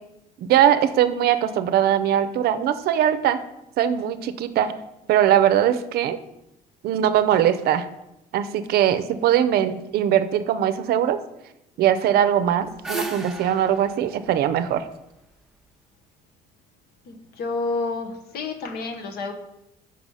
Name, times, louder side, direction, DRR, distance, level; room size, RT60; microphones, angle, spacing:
voice 1, 0.4-3.4 3.8-4.7 5.1-6.2 6.8-7.9 8.3-11.2 11.8-14.8, right 10 dB, 70° right, 12 dB, 0.5 m, -21 dB
sound 1, 12.4-15.5, right 2 dB, ahead, 0.7 m, -35 dB
voice 2, 17.1-19.3, left 3 dB, 65° left, 5 dB, 1.0 m, -29 dB
5.8 x 4.8 x 5.4 m, 0.88 s
cardioid pair, 110°, 17 cm